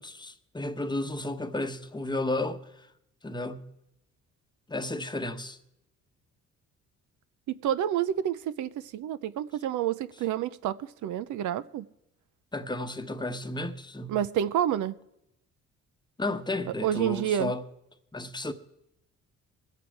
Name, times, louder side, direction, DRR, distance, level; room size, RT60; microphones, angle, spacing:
voice 1, 0.0-2.9 3.2-3.7 4.7-5.6 12.5-14.2 16.2-17.6 18.1-18.5, left 2 dB, 15° left, 1.0 m, -33 dB
voice 2, 7.5-11.8 14.1-15.0 16.8-17.5, right 10 dB, 75° right, 0.6 m, -29 dB
21.5 x 8.4 x 4.7 m
cardioid pair, 90°, 30 cm